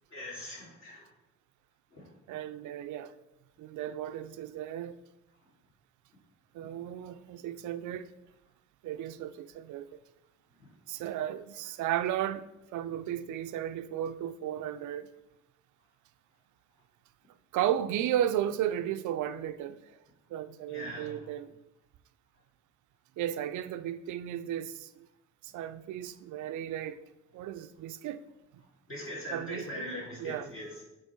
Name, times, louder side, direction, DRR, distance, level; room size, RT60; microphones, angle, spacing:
voice 1, 0.1-1.1 1.9-2.1 6.6-6.7 10.6-10.7 20.7-21.2 28.9-30.8, left 1 dB, 45° left, 2.3 m, -41 dB
voice 2, 2.3-3.1 3.6-5.0 6.5-8.1 8.8-9.9 10.9-12.5 12.7-15.1 17.5-20.0 20.3-21.6 23.2-25.1 25.4-27.0 27.3-28.2 28.5-28.6 29.3-29.8 30.2-30.5, right 11 dB, 75° right, 0.5 m, -34 dB
8.7 x 3.1 x 4.4 m
cardioid pair, 90°, 30 cm